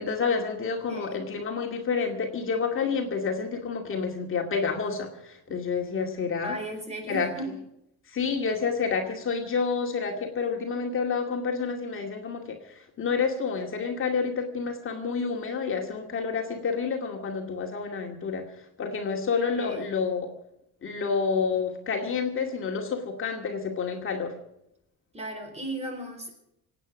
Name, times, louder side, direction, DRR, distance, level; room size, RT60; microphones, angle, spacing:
voice 1, 0.0-6.6 7.1-7.3 8.1-20.3 20.8-24.4, left 5 dB, 40° left, 2 dB, 2.3 m, -29 dB
voice 2, 0.9-1.2 5.5-5.6 6.4-7.5 19.6-20.0 25.1-26.3, right 1 dB, 20° right, 5 dB, 4.1 m, -36 dB
25.0 x 9.1 x 6.3 m, 0.81 s
cardioid pair, 150°, 33 cm